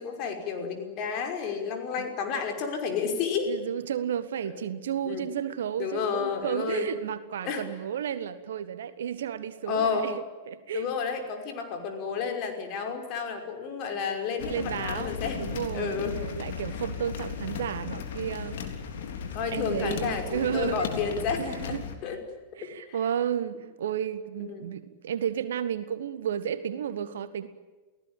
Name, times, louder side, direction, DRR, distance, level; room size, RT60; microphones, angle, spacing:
voice 1, 0.0-3.5 4.4-4.5 5.0-5.2 5.8-7.0 7.4-7.7 9.7-10.1 10.7-15.5 15.7-16.2 19.3-22.2 22.6-23.0 24.4-24.7, left 6 dB, 40° left, 5 dB, 5.5 m, -31 dB
voice 2, 3.5-10.8 14.4-18.6 19.5-20.8 21.4-21.8 22.6-27.5, right 9 dB, 60° right, 13 dB, 1.7 m, -32 dB
sound 1, 14.4-21.9, left 6 dB, 55° left, 3.6 m, -36 dB
sound 2, 15.7-21.9, right 3 dB, 75° right, 2.7 m, -49 dB
29.5 x 18.0 x 9.0 m, 1.3 s
figure-of-eight pair, 90°, 0 cm